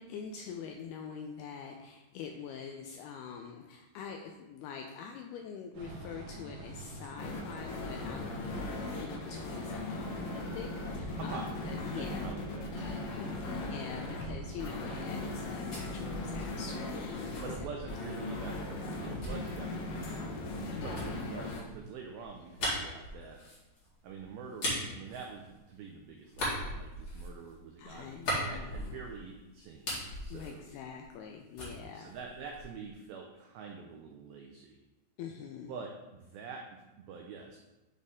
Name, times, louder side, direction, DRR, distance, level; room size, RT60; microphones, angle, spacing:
voice 1, 0.0-11.4 11.7-12.2 13.2-17.4 20.7-21.2 27.8-29.0 30.3-32.1 35.2-35.7, left 7 dB, 85° left, 3 dB, 2.3 m, -45 dB
sound 1, 5.7-15.4, right 3 dB, 75° right, 3.3 m, -48 dB
sound 2, 7.2-21.6, left 2 dB, 65° left, 2.4 m, -38 dB
voice 2, 11.2-13.3 16.6-16.8 17.4-20.3 20.6-23.4 24.0-29.9 30.2-30.7 31.8-34.8 35.7-35.9 36.2-37.6, right 5 dB, 90° right, 2 dB, 2.1 m, -46 dB
sound 3, 15.6-18.3 19.2-25.9 26.3-29.3 29.6-31.3 31.6-32.9, equal, 40° left, 1.8 m, -40 dB
10.5 x 4.1 x 3.6 m, 1.0 s
omnidirectional pair, 5.0 m